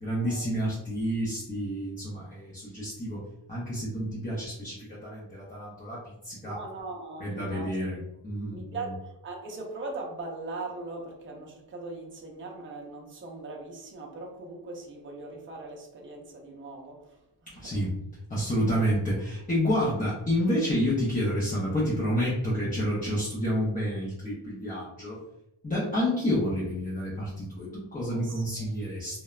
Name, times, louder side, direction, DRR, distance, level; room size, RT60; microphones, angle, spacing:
voice 1, 0.0-6.6 7.2-8.6 17.5-18.0 18.3-25.2 25.6-29.2, equal, 20° left, -7 dB, 0.5 m, -29 dB
voice 2, 6.4-7.8 8.5-17.8 28.1-28.7, right 3 dB, 30° right, 0 dB, 0.5 m, -40 dB
3.0 x 2.1 x 2.3 m, 0.87 s
wide cardioid pair, 175°, 42 cm